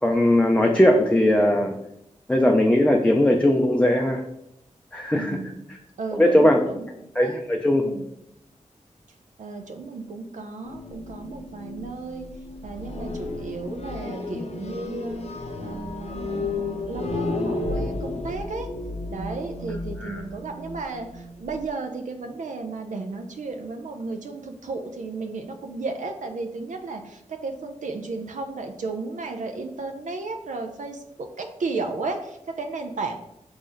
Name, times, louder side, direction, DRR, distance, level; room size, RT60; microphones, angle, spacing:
voice 1, 0.0-1.8 2.3-4.2 4.9-5.4 6.1-6.6 7.2-7.8 20.0-20.2, left 1 dB, 10° left, 1 dB, 0.5 m, -19 dB
voice 2, 5.1-5.6 6.0-7.4 7.8-8.1 9.4-12.3 12.6-15.3 15.6-18.7 19.1-33.1, right 3 dB, 75° right, 4 dB, 0.5 m, -34 dB
sound 1, 10.6-21.6, left 2 dB, 55° left, 0.6 m, -33 dB
3.9 x 3.1 x 3.8 m, 0.82 s
cardioid pair, 50°, 13 cm